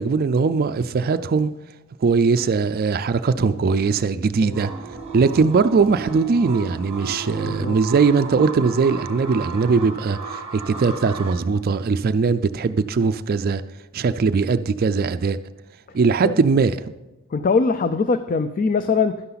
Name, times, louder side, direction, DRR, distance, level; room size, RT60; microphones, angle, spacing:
voice 1, 0.0-1.5 2.0-4.7 5.1-13.6 13.9-15.4 15.9-16.8, right 4 dB, 45° right, 0.4 m, -20 dB
sound 1, 4.5-11.3, right 5 dB, 30° right, 1.6 m, -34 dB
voice 2, 7.4-7.8 16.2-16.3 17.3-19.2, left 4 dB, 40° left, 0.4 m, -22 dB
11.5 x 11.5 x 4.0 m
head